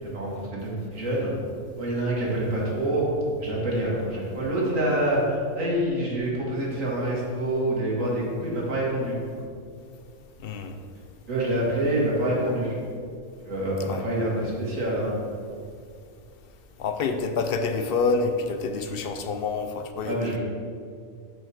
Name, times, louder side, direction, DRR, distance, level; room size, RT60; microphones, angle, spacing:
voice 1, 0.0-1.3 1.8-3.1 3.4-9.4 11.3-12.8 13.4-15.2 20.0-20.4, right 1 dB, 85° right, -4 dB, 2.1 m, -26 dB
voice 2, 10.4-10.7 13.9-14.0 16.8-20.2, left 4 dB, 60° left, 7 dB, 0.6 m, -27 dB
6.5 x 4.6 x 6.1 m, 2.2 s
omnidirectional pair, 1.3 m